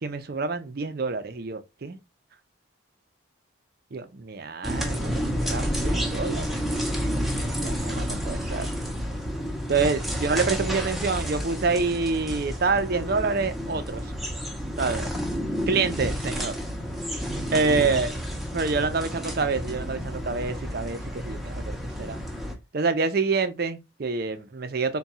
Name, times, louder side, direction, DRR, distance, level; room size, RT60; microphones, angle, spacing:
voice 1, 0.0-2.0 3.9-6.6 7.6-8.7 9.7-14.1 14.8-15.1 15.7-16.6 17.2-18.1 18.5-22.2 22.7-25.0, right 4 dB, 50° right, 0.5 m, -27 dB
sound 1, 4.6-22.5, equal, ahead, 0.6 m, -30 dB
3.5 x 2.3 x 4.1 m
head